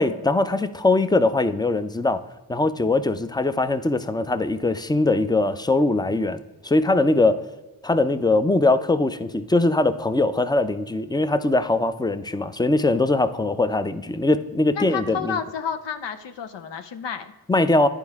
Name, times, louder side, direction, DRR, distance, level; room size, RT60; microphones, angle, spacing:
voice 1, 0.0-2.2 2.5-7.5 7.8-15.4 17.5-17.9, left 2 dB, 10° left, 12 dB, 0.5 m, -21 dB
voice 2, 14.8-17.3, left 7 dB, 75° left, 8 dB, 0.6 m, -31 dB
9.9 x 4.4 x 3.5 m, 1.2 s
cardioid pair, 45°, 44 cm